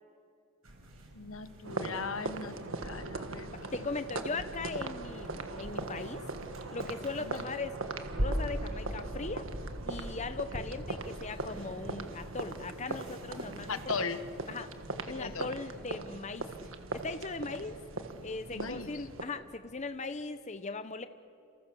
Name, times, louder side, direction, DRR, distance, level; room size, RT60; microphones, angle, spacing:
sound 1, 0.6-19.2, equal, 85° right, 6.1 m, -43 dB
voice 1, 1.1-3.5 7.3-7.4 13.7-14.2 15.1-15.5 18.5-18.9, left 5 dB, 70° left, 11 dB, 1.3 m, -38 dB
sound 2, 1.6-19.2, right 3 dB, 65° right, 1.6 m, -40 dB
voice 2, 3.5-6.2 6.7-7.8 8.2-9.5 9.9-13.8 14.5-14.7 15.1-17.8 18.2-21.1, left 3 dB, 35° left, 10 dB, 0.8 m, -39 dB
29.5 x 28.5 x 7.0 m, 2.5 s
head